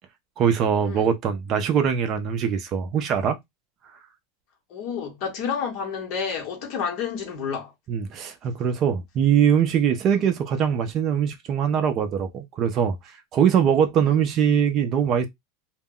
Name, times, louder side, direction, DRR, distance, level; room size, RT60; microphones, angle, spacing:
voice 1, 0.4-3.4 7.9-15.3, right 8 dB, 35° right, 0.4 m, -22 dB
voice 2, 4.7-7.7, left 6 dB, 45° left, 0.9 m, -30 dB
2.1 x 2.0 x 3.6 m
supercardioid pair, 160°, 0 cm